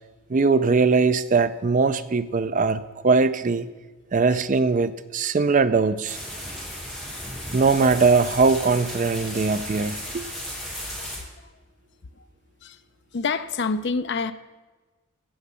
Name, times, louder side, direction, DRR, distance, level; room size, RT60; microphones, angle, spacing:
voice 1, 0.3-3.7 4.1-6.2 7.5-10.3, right 4 dB, 35° right, 0.4 m, -21 dB
sound 1, 6.1-11.2, equal, ahead, 4.6 m, -35 dB
voice 2, 10.9-11.5 12.2-12.3 12.6-12.8 13.1-14.3, left 4 dB, 50° left, 0.6 m, -28 dB
16.5 x 6.6 x 6.9 m
head